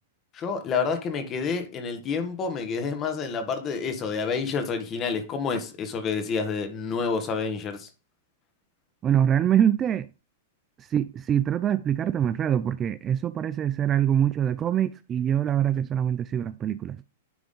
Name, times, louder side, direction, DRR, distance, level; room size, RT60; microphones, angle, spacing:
voice 1, 0.3-7.9, left 5 dB, 30° left, 1.5 m, -29 dB
voice 2, 9.0-10.1 10.8-17.0, right 9 dB, 25° right, 0.3 m, -24 dB
10.5 x 3.6 x 3.8 m
hypercardioid pair, 135°, 0 cm